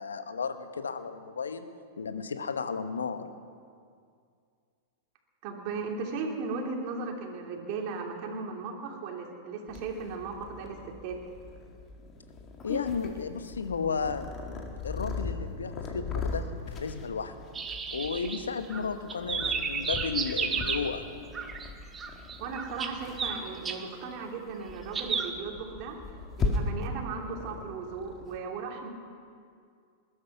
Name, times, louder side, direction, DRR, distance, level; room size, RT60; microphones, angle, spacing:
voice 1, 0.0-1.7 2.0-3.3 12.6-17.3 17.9-21.1, left 5 dB, 80° left, 10 dB, 1.1 m, -34 dB
voice 2, 5.4-11.2 22.4-26.0 26.3-28.9, right 4 dB, 50° right, 1 dB, 2.9 m, -36 dB
Purr, 9.7-28.4, left 3 dB, 30° left, 2.2 m, -38 dB
sound 1, 17.5-18.8 19.1-20.9 21.3-21.7 21.9-23.8 24.9-25.3, right 6 dB, 20° right, 1.5 m, -32 dB
20.5 x 11.5 x 5.8 m, 2.2 s
figure-of-eight pair, 100°, 0 cm